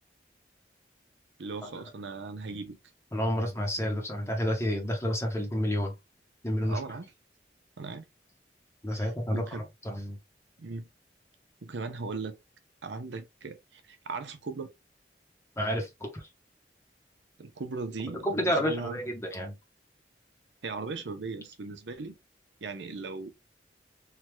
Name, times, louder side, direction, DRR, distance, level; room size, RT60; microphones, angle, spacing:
voice 1, 1.4-2.8 6.6-7.1 7.8-8.0 8.9-9.6 10.6-10.9 11.6-12.4 12.8-14.7 17.4-18.9 20.6-22.2 22.6-23.3, right 4 dB, 85° right, 0.7 m, -38 dB
voice 2, 3.1-5.9 6.4-6.8 8.8-10.2 15.6-16.3 18.2-19.6, equal, 15° left, 0.8 m, -30 dB
3.3 x 2.3 x 3.0 m
head